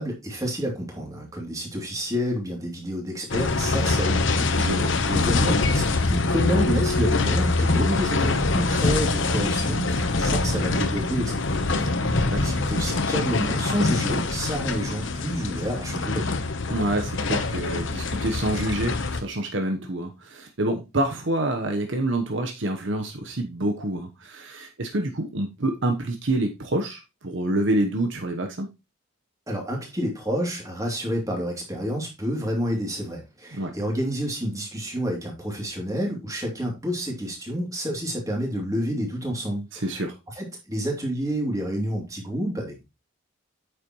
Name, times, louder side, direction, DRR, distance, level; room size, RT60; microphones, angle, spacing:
voice 1, 0.0-4.8 5.1-16.3 29.5-40.0 40.3-42.8, equal, 15° right, 0 dB, 2.8 m, -29 dB
sound 1, 3.3-19.2, left 3 dB, 65° left, 1.0 m, -24 dB
voice 2, 4.6-4.9 12.3-12.6 16.7-28.7 33.5-33.7 39.7-40.1, right 1 dB, 60° right, 4 dB, 1.1 m, -27 dB
9.2 x 6.8 x 3.1 m, 0.25 s
head